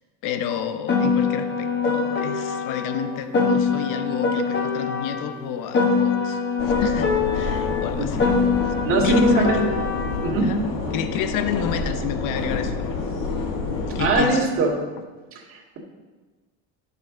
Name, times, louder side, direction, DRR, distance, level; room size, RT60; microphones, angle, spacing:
voice 1, 0.2-8.3 8.6-9.6 10.4-10.6 10.9-12.9 13.9-14.5, left 9 dB, 60° left, 9 dB, 0.8 m, -30 dB
Piano, 0.9-5.3 5.7-10.3, left 5 dB, 30° left, 1.2 m, -23 dB
sound 1, 6.6-14.1, left 3 dB, 80° left, 1.7 m, -28 dB
voice 2, 8.8-9.6 10.2-10.5 14.0-14.7 15.3-15.8, right 3 dB, 35° right, -2 dB, 2.0 m, -21 dB
12.0 x 6.9 x 3.9 m, 1.3 s
cardioid pair, 150°, 36 cm